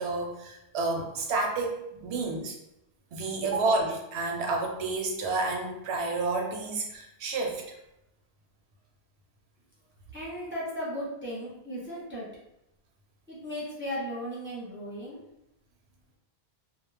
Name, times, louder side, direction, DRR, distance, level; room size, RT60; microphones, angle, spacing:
voice 1, 0.0-2.6 3.1-7.6, right 3 dB, 85° right, 1 dB, 0.8 m, -30 dB
voice 2, 10.1-12.3 13.3-15.2, equal, 15° right, -7 dB, 0.6 m, -36 dB
2.3 x 2.0 x 3.2 m, 0.85 s
omnidirectional pair, 1.1 m